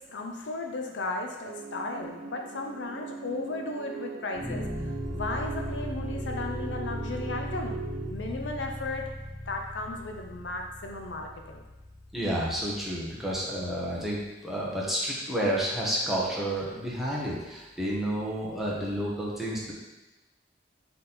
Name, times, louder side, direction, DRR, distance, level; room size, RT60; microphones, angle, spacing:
voice 1, 0.0-4.7 5.1-7.8 8.1-11.6, left 2 dB, 70° left, 2 dB, 0.6 m, -35 dB
sound 1, 1.4-8.1, right 5 dB, 55° right, 0.5 m, -40 dB
sound 2, 4.3-13.5, left 1 dB, 15° left, 0.4 m, -38 dB
voice 2, 12.1-19.7, right 1 dB, ahead, -6 dB, 1.2 m, -30 dB
5.3 x 4.1 x 4.3 m, 1.1 s
head